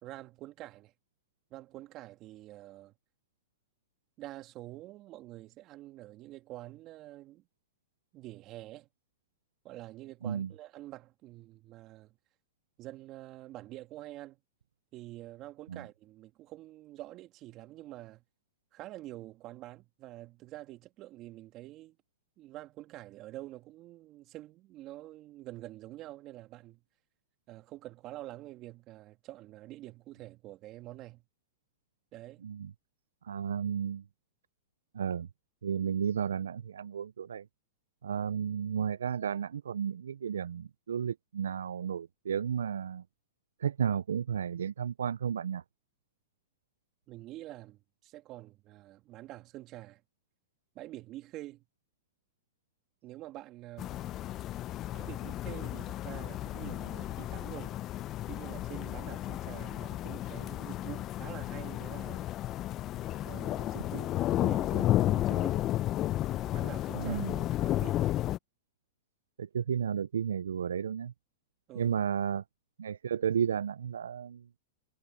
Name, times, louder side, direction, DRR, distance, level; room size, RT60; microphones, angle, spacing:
voice 1, 0.0-0.9 1.5-2.9 4.2-7.4 8.1-8.9 9.6-12.2 12.8-14.4 14.9-18.2 18.7-22.0 22.4-26.8 27.5-31.2 32.1-32.4 47.1-50.0 50.7-51.6 53.0-54.1 54.9-57.8 58.3-62.3 63.2-65.7 66.5-67.2 67.6-68.1 71.7-72.0, right 16 dB, 35° right, 2.5 m, -47 dB
voice 2, 33.2-34.0 34.9-35.3 35.6-37.4 38.0-43.0 43.6-45.6 66.9-67.3 69.4-71.1 71.8-72.4 72.8-74.4, right 8 dB, 85° right, 0.3 m, -33 dB
sound 1, 53.8-68.4, left 14 dB, 35° left, 0.6 m, -33 dB
hypercardioid pair, 125°, 0 cm